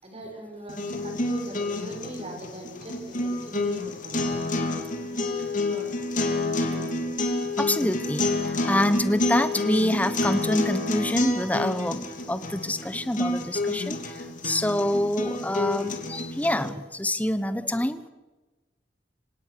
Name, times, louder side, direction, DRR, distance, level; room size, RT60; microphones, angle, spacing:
voice 1, 0.0-4.4 5.0-5.3 5.6-5.9 6.5-7.2, right 1 dB, 35° right, 2 dB, 6.2 m, -41 dB
sound 1, 0.7-16.7, left 2 dB, 45° left, 3.2 m, -29 dB
voice 2, 7.6-14.2 14.4-18.1, left 1 dB, 10° left, 13 dB, 1.1 m, -26 dB
26.5 x 18.0 x 6.9 m, 1.2 s
head